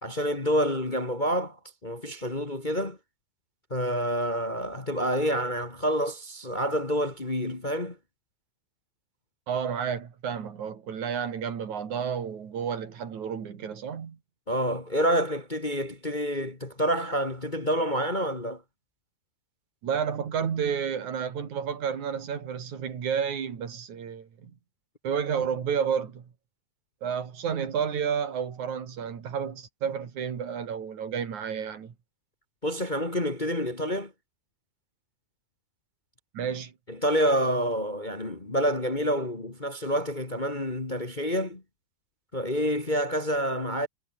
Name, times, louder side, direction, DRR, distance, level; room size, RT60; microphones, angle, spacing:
voice 1, 0.0-3.0 3.7-8.0 14.5-18.6 32.6-34.1 36.9-41.6 42.3-43.9, equal, 20° left, 1.7 m, -28 dB
voice 2, 9.5-14.2 19.8-24.5 25.0-26.3 27.0-31.9 36.3-36.7, right 7 dB, 80° right, 4.1 m, -31 dB
omnidirectional pair, 3.3 m